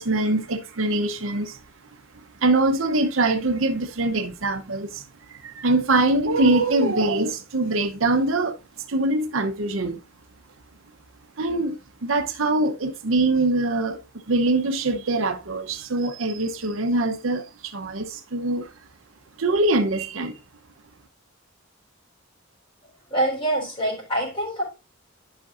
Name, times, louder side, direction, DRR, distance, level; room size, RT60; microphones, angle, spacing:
voice 1, 0.0-1.6 2.4-5.0 5.3-8.6 8.9-10.0 11.4-11.8 12.0-14.0 14.3-18.7 19.4-20.3, right 2 dB, 70° right, 0.8 m, -23 dB
voice 2, 23.1-24.6, right 1 dB, 25° left, 3.8 m, -25 dB
11.5 x 5.9 x 2.5 m
head